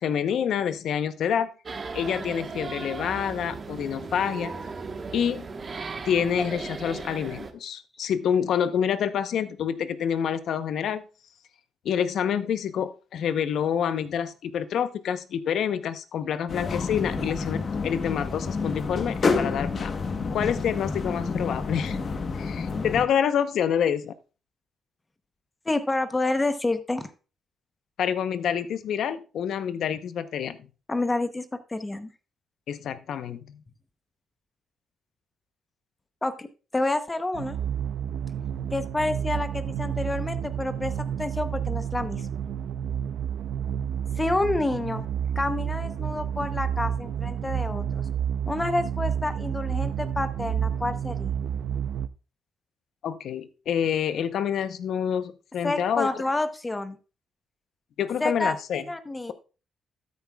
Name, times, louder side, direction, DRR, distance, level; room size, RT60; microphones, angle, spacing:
voice 1, 0.0-1.5 1.9-4.5 5.1-5.5 6.0-11.0 11.8-17.6 17.8-19.9 20.3-22.0 22.3-24.1 28.0-30.6 32.7-33.6 53.0-56.1 58.0-58.8, left 8 dB, 65° left, 12 dB, 0.8 m, -27 dB
sound 1, 1.7-7.5, right 4 dB, 35° right, 1.1 m, -37 dB
sound 2, 16.5-23.1, left 4 dB, 40° left, 1.0 m, -29 dB
voice 2, 25.7-27.1 30.9-32.1 36.2-37.6 38.7-42.3 44.2-45.0 45.4-48.0 48.5-51.4 55.6-57.0 58.2-59.3, left 2 dB, 15° left, 10 dB, 0.8 m, -29 dB
sound 3, 37.3-52.1, right 8 dB, 75° right, 0.5 m, -30 dB
13.0 x 9.5 x 2.3 m, 0.34 s
cardioid pair, 140°, 0 cm